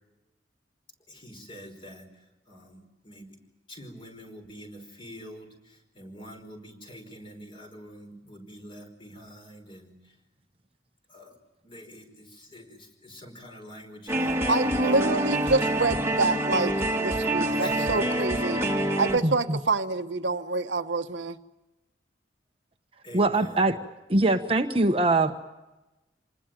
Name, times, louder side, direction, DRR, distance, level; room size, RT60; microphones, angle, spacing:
voice 1, 1.1-3.4 3.7-10.2 11.1-15.2 15.6-15.9 17.6-18.1 23.0-23.7, equal, 30° left, 4 dB, 4.9 m, -45 dB
sound 1, 14.1-19.2, right 1 dB, 15° right, 1.9 m, -26 dB
voice 2, 14.5-18.7 19.0-21.4, right 3 dB, 80° right, 7 dB, 1.3 m, -27 dB
voice 3, 19.2-19.6 23.1-23.8 24.1-25.3, right 2 dB, 30° right, 5 dB, 1.1 m, -22 dB
27.0 x 20.0 x 9.1 m, 1.0 s
head